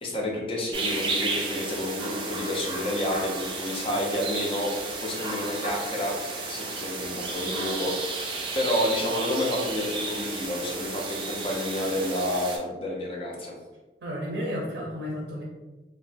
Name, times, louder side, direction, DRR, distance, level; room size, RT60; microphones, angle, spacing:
voice 1, 0.0-4.7 5.0-6.2 6.5-7.9 8.5-13.5, left 1 dB, 30° left, -2 dB, 0.5 m, -29 dB
sound 1, 0.7-12.6, right 3 dB, 30° right, 0.4 m, -33 dB
voice 2, 14.0-15.4, equal, 80° right, -2 dB, 0.5 m, -32 dB
3.4 x 2.0 x 2.5 m, 1.1 s
head